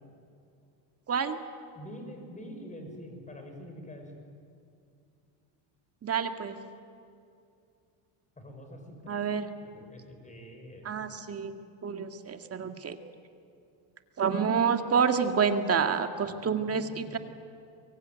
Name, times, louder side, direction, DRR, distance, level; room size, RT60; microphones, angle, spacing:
voice 1, 1.1-1.4 6.0-6.6 9.1-9.5 10.8-11.5 11.8-13.0 14.2-17.2, right 6 dB, 30° right, 7 dB, 1.9 m, -28 dB
voice 2, 1.7-4.1 8.4-9.1 9.6-11.1 16.2-17.2, equal, 15° left, 4 dB, 5.9 m, -46 dB
25.0 x 23.0 x 9.3 m, 2.5 s
cardioid pair, 125°, 49 cm